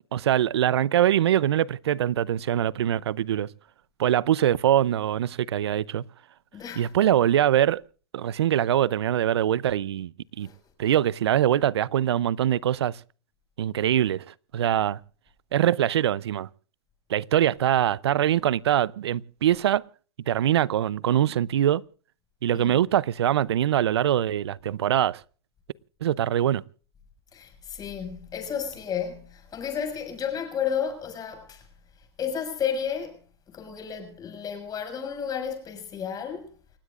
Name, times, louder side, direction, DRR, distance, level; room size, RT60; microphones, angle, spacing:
voice 1, 0.1-3.5 4.0-6.0 6.8-7.8 8.1-10.1 10.4-10.5 10.8-13.0 13.6-15.0 15.5-16.5 17.1-19.8 20.3-21.8 22.4-25.2 26.0-26.6, right 11 dB, 80° right, 0.6 m, -23 dB
voice 2, 6.5-6.9 10.4-10.6 22.5-22.8 27.3-31.7 32.0-33.2 33.5-36.5, left 7 dB, 30° left, 6.3 m, -32 dB
29.5 x 16.0 x 2.5 m
hypercardioid pair, 110°, 13 cm